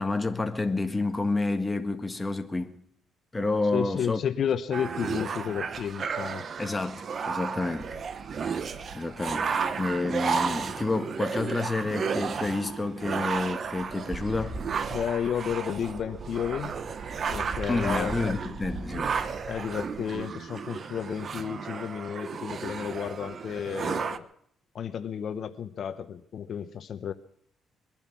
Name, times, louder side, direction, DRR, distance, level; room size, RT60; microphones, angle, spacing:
voice 1, 0.0-2.8 3.3-4.2 6.6-7.9 8.4-8.6 8.9-14.6 17.7-19.1, left 3 dB, 15° left, 1.6 m, -29 dB
voice 2, 3.7-6.5 14.9-16.7 17.3-18.4 19.5-24.3 24.7-27.1, left 8 dB, 60° left, 0.9 m, -32 dB
sound 1, 4.7-24.2, right 6 dB, 50° right, 1.0 m, -33 dB
sound 2, 7.7-10.8 11.1-11.2 12.1-12.2 12.5-19.1, right 5 dB, 85° right, 4.2 m, -51 dB
sound 3, 14.1-20.2, right 2 dB, 20° right, 2.8 m, -41 dB
22.0 x 10.5 x 6.1 m
cardioid pair, 90°, 0 cm